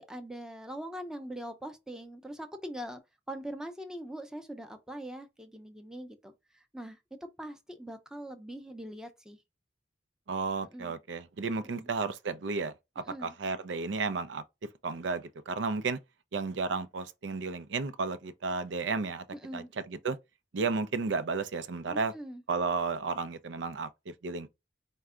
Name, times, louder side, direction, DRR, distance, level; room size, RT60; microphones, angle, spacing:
voice 1, 0.0-3.0 3.3-9.4 10.7-11.0 11.6-11.9 13.0-13.3 19.3-19.7 21.9-22.4, right 1 dB, 5° right, 0.6 m, -42 dB
voice 2, 10.3-14.4 14.8-16.0 16.3-19.2 19.5-20.2 20.5-22.1 22.5-24.5, right 4 dB, 90° right, 0.5 m, -33 dB
4.6 x 2.1 x 3.7 m
head